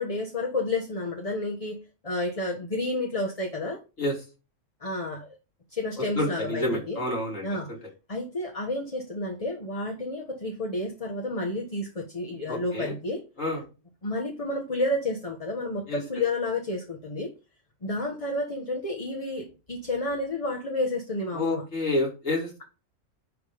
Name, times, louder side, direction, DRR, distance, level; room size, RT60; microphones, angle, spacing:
voice 1, 0.0-3.8 4.8-5.4 5.7-7.0 7.4-7.7 8.1-13.2 14.0-17.3 17.8-21.6, left 2 dB, 30° left, 1.2 m, -30 dB
voice 2, 6.2-7.5 12.5-12.9 13.4-13.6 15.9-16.0 21.3-22.6, left 1 dB, 80° left, 3.7 m, -28 dB
10.5 x 3.6 x 5.0 m
omnidirectional pair, 1.3 m